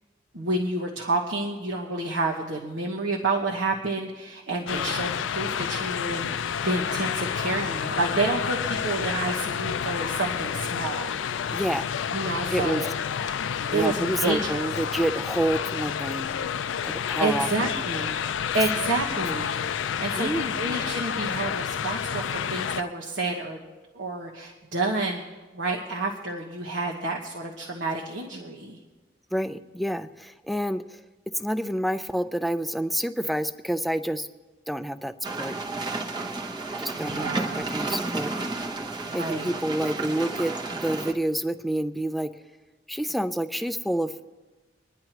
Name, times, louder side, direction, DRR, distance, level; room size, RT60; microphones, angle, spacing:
voice 1, 0.3-11.4 12.1-12.9 13.7-14.7 17.2-18.2 18.5-23.6 23.9-25.2 25.5-28.8 36.9-37.7 39.0-39.6, right 2 dB, 75° right, -1 dB, 1.3 m, -29 dB
sound 1, 4.7-22.8, left 8 dB, 80° left, 0.4 m, -29 dB
voice 2, 11.5-11.8 12.5-12.9 13.7-16.3 16.8-17.7 20.2-20.4 29.3-31.0 31.3-34.3 34.7-35.5 36.8-38.3 39.1-42.3 42.9-44.1, right 1 dB, ahead, 10 dB, 0.4 m, -28 dB
sound 2, 35.2-41.1, right 3 dB, 25° right, 1.0 m, -32 dB
25.5 x 10.5 x 3.0 m, 1.2 s
head